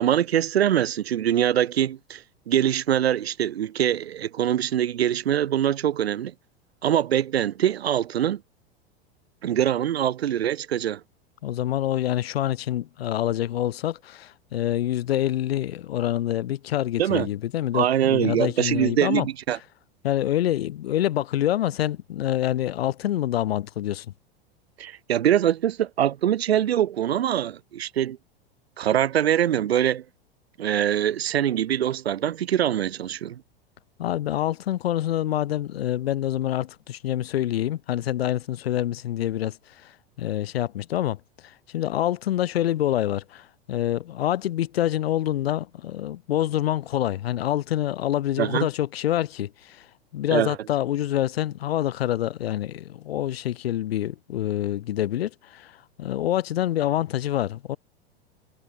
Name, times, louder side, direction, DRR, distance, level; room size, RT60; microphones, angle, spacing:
voice 1, 0.0-6.3 6.8-8.4 9.4-11.0 17.0-17.3 17.7-19.6 24.8-28.2 28.8-30.0 30.6-33.4 48.4-48.7 50.3-50.6, right 10 dB, 75° right, 1.2 m, -23 dB
voice 2, 11.4-19.3 20.0-24.1 34.0-39.6 39.8-39.9 40.2-41.2 41.4-49.8 50.1-55.7 56.0-57.8, left 12 dB, 70° left, 0.8 m, -26 dB
figure-of-eight pair, 90°, 31 cm